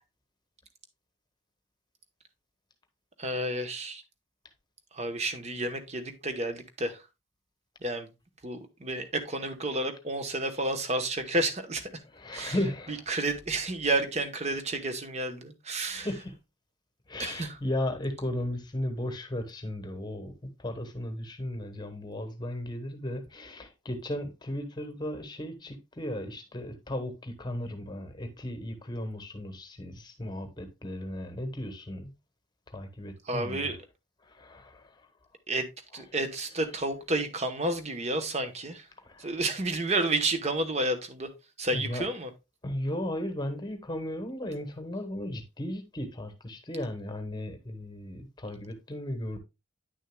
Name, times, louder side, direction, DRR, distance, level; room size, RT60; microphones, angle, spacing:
voice 1, 3.2-4.0 4.9-7.0 7.8-8.1 8.4-12.0 12.3-12.6 12.9-16.1 17.2-17.6 33.2-33.8 35.5-35.7 35.9-38.9 39.2-41.3 41.6-42.3, right 2 dB, 35° right, 0.9 m, -31 dB
voice 2, 12.1-13.0 15.9-16.3 17.1-20.3 20.6-32.1 32.7-33.7 34.3-34.8 39.1-39.3 41.7-42.0 42.6-49.4, left 1 dB, 20° left, 1.1 m, -35 dB
9.8 x 6.4 x 2.2 m
head